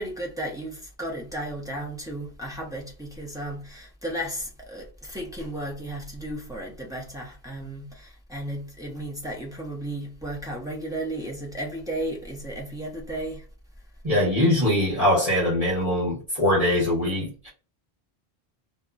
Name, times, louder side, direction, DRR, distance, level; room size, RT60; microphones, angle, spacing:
voice 1, 0.0-13.4, right 1 dB, 5° right, 0.7 m, -34 dB
voice 2, 14.0-17.5, left 1 dB, 35° right, 1.5 m, -22 dB
2.8 x 2.3 x 2.4 m
omnidirectional pair, 1.1 m